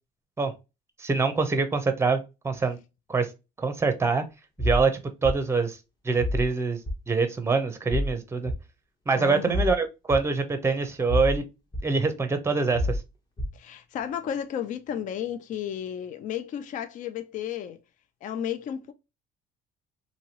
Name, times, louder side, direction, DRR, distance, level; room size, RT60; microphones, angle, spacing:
voice 1, 1.0-2.8 3.1-3.3 3.6-4.2 4.6-4.9 5.2-5.8 6.0-6.8 7.1-8.5 9.1-11.4 11.8-13.0, right 4 dB, 15° right, 0.6 m, -25 dB
sound 1, 4.6-4.8 5.2-5.4 6.2-6.4 6.9-7.0 7.9-8.1 8.5-8.6 9.5-9.7 10.1-10.2 11.1-11.4 11.7-11.8 12.7-13.0 13.4-13.5, left 1 dB, 25° left, 0.9 m, -27 dB
voice 2, 9.1-9.7 13.5-17.8 18.2-18.9, left 9 dB, 50° left, 0.4 m, -33 dB
2.9 x 2.7 x 2.8 m
cardioid pair, 110°, 17 cm